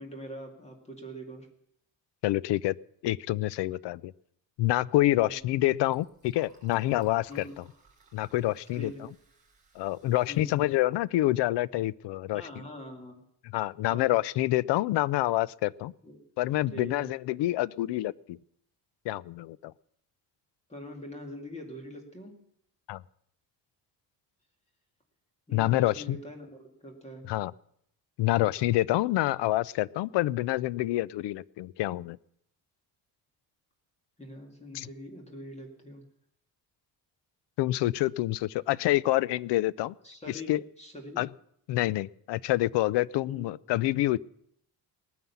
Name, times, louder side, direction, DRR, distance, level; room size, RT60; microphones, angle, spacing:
voice 1, 0.0-1.5 5.1-5.3 7.3-7.5 8.7-9.0 10.3-10.6 12.3-13.2 13.9-14.1 16.0-16.2 16.7-17.1 20.7-22.3 25.5-27.2 34.2-36.0 40.0-41.2 43.2-43.5, equal, 15° left, 3 dB, 2.2 m, -43 dB
voice 2, 2.2-2.7 3.0-4.1 4.6-7.6 8.1-8.9 9.8-12.5 13.5-15.9 16.4-18.4 19.0-19.7 22.9-23.0 25.5-26.2 27.3-27.5 28.2-32.2 34.7-34.9 37.6-39.9 40.3-40.6 41.2-41.3 41.7-44.2, left 16 dB, 75° left, 22 dB, 0.5 m, -27 dB
Liquid, 5.2-11.8, right 2 dB, 15° right, 4.2 m, -61 dB
19.0 x 9.4 x 7.0 m, 0.71 s
cardioid pair, 175°, 42 cm